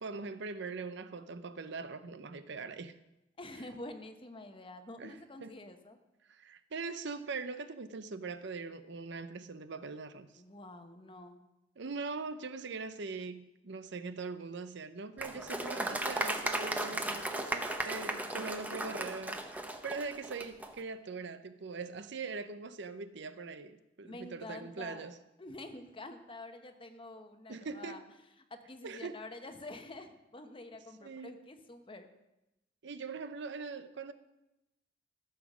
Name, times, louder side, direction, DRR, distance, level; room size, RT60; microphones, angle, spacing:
voice 1, 0.0-3.0 5.0-5.5 6.3-10.4 11.8-19.4 19.8-25.1 27.5-28.0 28.8-29.2 31.0-31.4 32.8-34.1, right 4 dB, 65° right, 0.7 m, -42 dB
voice 2, 3.4-6.0 10.4-11.4 17.2-18.0 18.3-19.2 24.0-25.0 25.4-28.0 28.4-32.1, left 2 dB, 30° left, 1.0 m, -48 dB
Applause, 15.2-20.7, right 1 dB, 10° right, 0.8 m, -36 dB
15.0 x 7.2 x 6.1 m
head